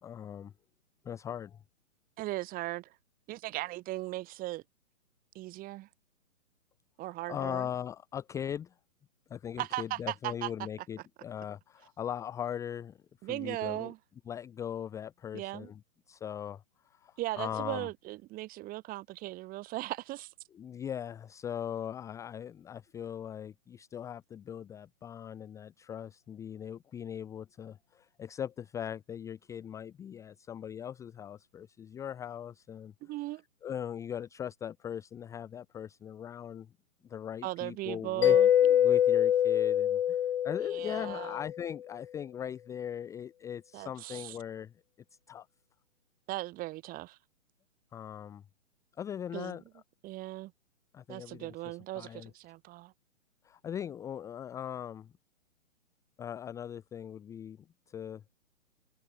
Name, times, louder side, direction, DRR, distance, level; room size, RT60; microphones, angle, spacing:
voice 1, 0.0-0.5 1.0-1.6 7.3-8.7 9.3-13.0 13.2-13.9 14.3-15.8 16.1-16.6 16.9-17.9 20.5-32.9 33.6-36.7 37.1-38.4 38.7-44.7 45.3-45.5 47.9-48.4 49.0-49.6 50.9-52.3 53.4-55.1 56.2-57.6 57.9-58.2, left 9 dB, 10° left, 0.8 m, -40 dB
voice 2, 2.2-3.0 3.3-4.6 5.3-5.9 7.0-7.7 9.6-10.5 13.2-14.0 15.3-15.7 17.2-20.3 33.0-33.4 37.4-38.5 40.7-41.4 43.7-44.4 46.3-47.2 49.3-49.6 50.0-50.5 51.1-52.9, right 18 dB, 20° right, 3.3 m, -38 dB
Mallet percussion, 38.2-41.7, left 10 dB, 50° left, 0.7 m, -25 dB
figure-of-eight pair, 130°, 40 cm